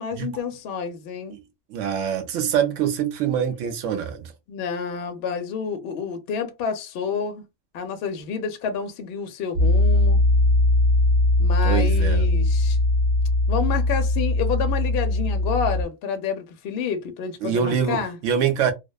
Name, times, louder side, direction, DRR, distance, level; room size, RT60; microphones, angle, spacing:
voice 1, 0.0-1.4 4.5-7.4 7.7-10.2 11.4-12.8 13.5-18.2, left 6 dB, 65° left, 0.7 m, -29 dB
voice 2, 1.7-4.3 11.6-12.3 17.4-18.7, right 8 dB, 80° right, 1.0 m, -24 dB
Piano, 9.6-15.8, left 2 dB, 55° right, 0.8 m, -20 dB
2.6 x 2.1 x 2.2 m
omnidirectional pair, 1.3 m